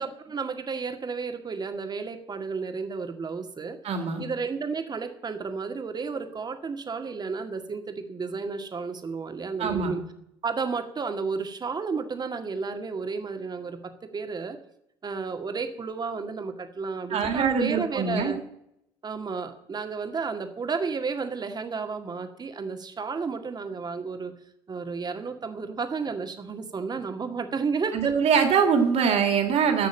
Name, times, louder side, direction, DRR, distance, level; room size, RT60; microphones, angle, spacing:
voice 1, 0.0-3.8 4.2-10.0 10.4-14.6 15.0-18.4 19.0-24.3 24.7-28.1, right 5 dB, 30° right, 7 dB, 1.9 m, -32 dB
voice 2, 3.8-4.2 9.6-9.9 17.1-18.3 27.9-29.9, right 6 dB, 55° right, 5 dB, 2.9 m, -23 dB
14.0 x 6.3 x 8.7 m, 0.77 s
hypercardioid pair, 60°, 13 cm